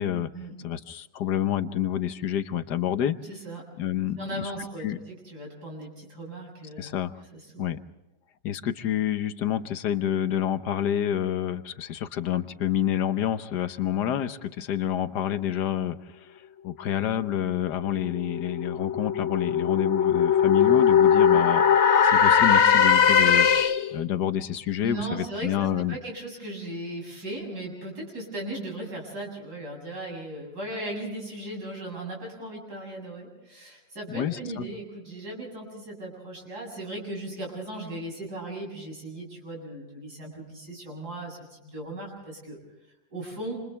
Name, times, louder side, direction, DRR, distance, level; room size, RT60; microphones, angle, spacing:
voice 1, 0.6-3.2 3.8-4.5 4.8-5.0 6.8-7.1 7.6-7.8 8.4-21.6 22.0-23.5 23.9-26.0 34.1-34.6, left 10 dB, 75° left, 11 dB, 1.6 m, -28 dB
voice 2, 3.2-3.6 4.2-6.9 7.3-7.7 24.8-42.6 43.1-43.6, right 1 dB, 65° right, -1 dB, 8.3 m, -37 dB
sound 1, 17.8-24.0, left 7 dB, 50° left, 1.1 m, -20 dB
28.0 x 28.0 x 3.4 m, 1.0 s
omnidirectional pair, 1.8 m